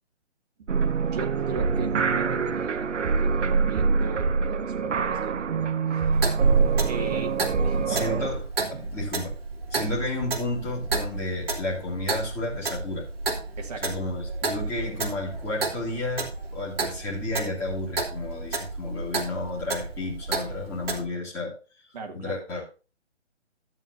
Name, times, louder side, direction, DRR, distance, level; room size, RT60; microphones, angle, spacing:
sound 1, 0.7-8.3, right 5 dB, 85° right, 0.9 m, -24 dB
voice 1, 1.0-6.1 6.9-7.3 7.6-7.9 8.7-8.8 9.7-9.9 13.6-13.8 21.9-22.3, right 4 dB, 35° right, 1.9 m, -37 dB
Clock, 6.1-21.0, right 3 dB, 55° right, 2.7 m, -32 dB
voice 2, 7.9-9.4 9.7-13.1 13.8-21.6 22.1-22.7, left 2 dB, 5° left, 2.5 m, -32 dB
13.0 x 8.6 x 2.7 m
hypercardioid pair, 165°, 35 cm